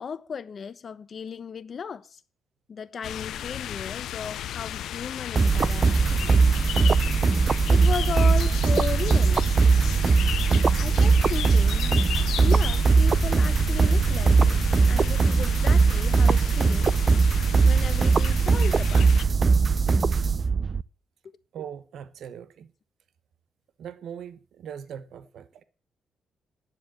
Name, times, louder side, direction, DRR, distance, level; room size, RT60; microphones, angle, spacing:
voice 1, 0.0-2.1 2.7-6.4 7.7-9.5 10.8-12.0 12.4-16.9 17.6-19.1, left 6 dB, 50° left, 1.0 m, -35 dB
sound 1, 3.0-19.2, left 11 dB, 85° left, 0.7 m, -35 dB
sound 2, 5.4-20.8, right 4 dB, 40° right, 0.5 m, -20 dB
voice 2, 21.5-22.7 23.8-25.6, right 8 dB, 75° right, 1.0 m, -40 dB
10.0 x 7.6 x 8.9 m
cardioid pair, 105°, 0 cm